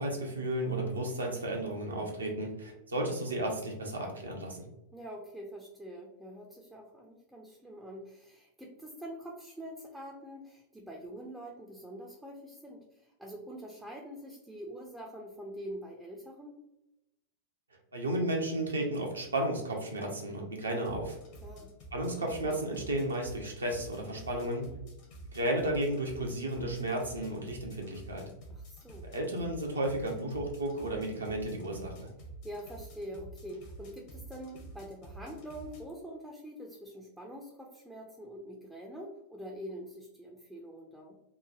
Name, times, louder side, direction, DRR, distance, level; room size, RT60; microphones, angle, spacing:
voice 1, 0.0-4.6 17.9-21.2 21.9-24.7 25.3-28.3 29.0-32.1, right 1 dB, 75° right, 1 dB, 0.6 m, -33 dB
voice 2, 4.9-16.5 21.4-21.7 28.5-29.1 32.4-41.2, equal, 5° right, -1 dB, 0.4 m, -45 dB
sound 1, 20.8-35.8, right 1 dB, 45° left, 0.7 m, -49 dB
3.1 x 2.1 x 2.4 m, 0.90 s
figure-of-eight pair, 90°, 0 cm